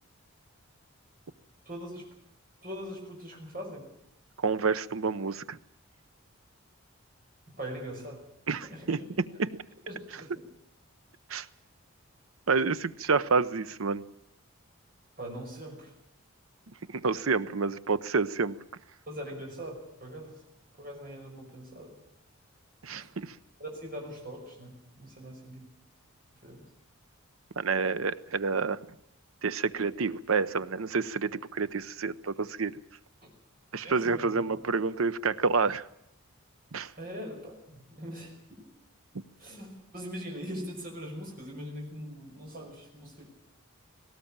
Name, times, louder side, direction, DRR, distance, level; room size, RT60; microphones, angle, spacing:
voice 1, 1.6-2.1 2.6-3.9 7.6-9.0 9.9-10.3 15.2-15.9 19.1-20.4 20.8-21.9 23.0-23.1 23.6-25.6 26.4-26.6 33.2-33.3 33.8-34.6 37.0-38.3 39.4-43.2, equal, 40° right, -1 dB, 5.7 m, -41 dB
voice 2, 4.4-5.6 8.5-9.0 9.4-9.5 11.3-11.5 12.5-14.0 16.9-18.6 22.8-23.4 27.6-28.8 29.4-32.7 33.7-35.9 36.7-36.9, right 4 dB, 75° right, 15 dB, 0.8 m, -28 dB
19.0 x 18.0 x 8.7 m, 0.74 s
head